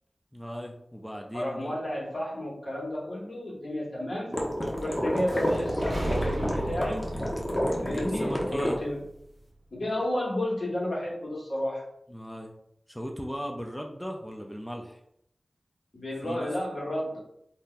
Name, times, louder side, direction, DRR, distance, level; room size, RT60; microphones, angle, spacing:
voice 1, 0.3-1.8 7.9-8.8 12.1-12.5 12.9-15.0 16.2-16.5, equal, 5° left, 2 dB, 0.4 m, -38 dB
voice 2, 1.3-4.3 4.8-7.1 7.8-9.0 9.7-11.8 15.9-17.2, left 1 dB, 70° left, -5 dB, 1.3 m, -32 dB
sound 1, 4.3-8.7, equal, 25° left, 0.8 m, -29 dB
sound 2, 5.3-9.2, right 1 dB, 65° right, 0.8 m, -35 dB
2.6 x 2.2 x 3.8 m, 0.74 s
cardioid pair, 45°, 0 cm